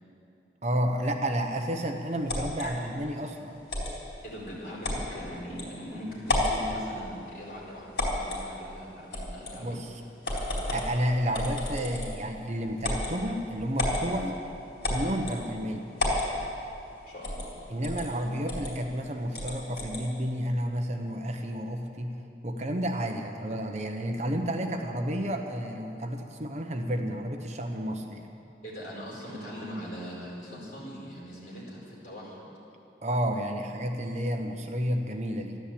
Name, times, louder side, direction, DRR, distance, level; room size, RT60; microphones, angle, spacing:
voice 1, 0.6-3.6 9.6-10.0 10.7-14.4 14.9-15.8 17.7-22.1 22.4-28.3 33.0-35.6, equal, 40° right, 4 dB, 1.0 m, -31 dB
sound 1, 2.3-2.7 3.7-3.9 4.8-5.0 5.6-5.7 6.2-6.6 8.0-8.4 9.1-9.6 10.2-10.9 11.3-12.2 12.8-13.1 13.8-14.0 14.8-15.4 16.0-16.3 17.2-17.5 17.8-18.0 18.5-18.7 19.3-20.0, left 1 dB, 65° left, 4.2 m, -30 dB
voice 2, 4.2-9.7 17.1-17.5 28.6-32.5, equal, 50° left, -5 dB, 4.5 m, -41 dB
13.5 x 11.5 x 8.5 m, 2.7 s
head